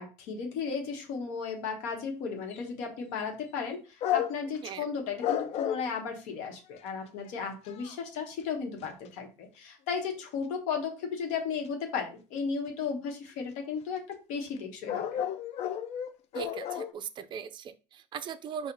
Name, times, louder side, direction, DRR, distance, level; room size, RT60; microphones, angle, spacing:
voice 1, 0.0-15.2, left 5 dB, 70° left, 2 dB, 1.2 m, -35 dB
sound 1, 2.5-2.6 4.0-4.6 5.2-5.9 6.8-6.9 7.3-7.4 7.7-8.2 8.8-9.1 12.7-12.8 13.1-13.2 14.6-14.7 14.9-16.9, left 10 dB, 50° left, 0.4 m, -32 dB
voice 2, 16.3-18.7, right 7 dB, 35° right, 11 dB, 0.4 m, -39 dB
4.4 x 2.4 x 3.9 m, 0.33 s
supercardioid pair, 105°, 13 cm